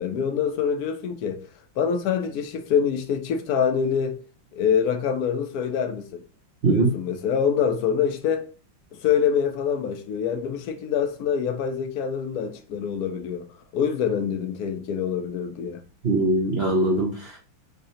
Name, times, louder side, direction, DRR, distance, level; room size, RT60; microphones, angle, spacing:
voice 1, 0.0-1.4 1.8-4.2 4.5-6.2 6.6-8.5 9.0-13.5 13.7-15.8, left 7 dB, 70° left, 0.9 m, -25 dB
voice 2, 6.6-7.0 16.0-17.4, right 2 dB, 70° right, 0.5 m, -22 dB
4.0 x 2.7 x 4.2 m
omnidirectional pair, 2.3 m